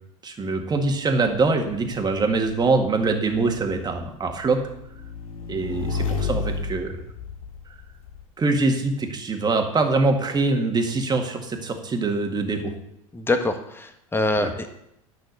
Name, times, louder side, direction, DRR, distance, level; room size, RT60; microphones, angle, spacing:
voice 1, 0.2-4.6 5.5-6.9 8.4-12.7 14.4-14.5, right 3 dB, 25° right, 4 dB, 1.9 m, -23 dB
Motorcycle / Engine, 1.2-8.2, left 4 dB, 80° left, 1.2 m, -33 dB
voice 2, 13.1-14.7, left 2 dB, 15° left, 6 dB, 1.5 m, -24 dB
10.5 x 6.3 x 6.7 m, 0.78 s
hypercardioid pair, 85°, 18 cm